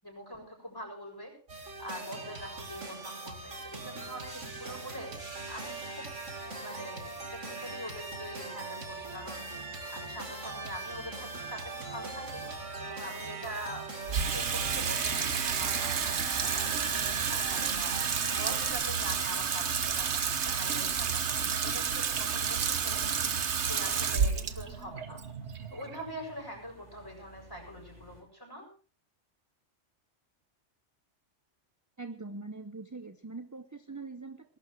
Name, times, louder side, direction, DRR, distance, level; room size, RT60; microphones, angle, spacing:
voice 1, 0.0-1.3 1.8-6.1 6.6-9.5 9.9-12.5 12.8-18.1 18.4-23.0 23.7-25.2 25.7-28.7, equal, 20° left, 0 dB, 7.4 m, -44 dB
sound 1, 1.5-18.7, right 3 dB, 85° right, 2.9 m, -40 dB
Water tap faucet / Sink (filling or washing), 14.1-26.5, right 6 dB, 65° right, 1.4 m, -30 dB
sound 2, 22.2-28.2, right 2 dB, 35° right, 5.7 m, -55 dB
voice 2, 32.0-34.6, right 3 dB, 20° right, 10 dB, 0.7 m, -43 dB
20.5 x 12.0 x 4.6 m, 0.41 s
omnidirectional pair, 1.2 m